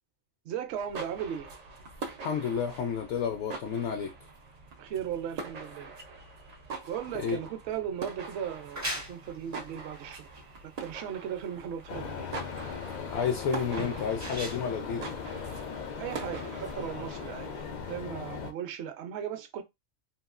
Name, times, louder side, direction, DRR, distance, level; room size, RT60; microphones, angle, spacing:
voice 1, 0.4-1.5 4.8-5.9 6.9-10.3 10.6-12.3 15.9-19.6, right 9 dB, 65° right, 0.8 m, -37 dB
sound 1, 0.7-18.0, right 4 dB, 85° right, 0.3 m, -44 dB
voice 2, 2.2-4.1 7.2-7.4 13.1-15.1, left 7 dB, 65° left, 0.8 m, -31 dB
sound 2, 8.4-15.9, equal, 20° right, 0.5 m, -41 dB
sound 3, 11.9-18.5, left 6 dB, 85° left, 0.4 m, -38 dB
2.9 x 2.3 x 2.4 m
omnidirectional pair, 1.4 m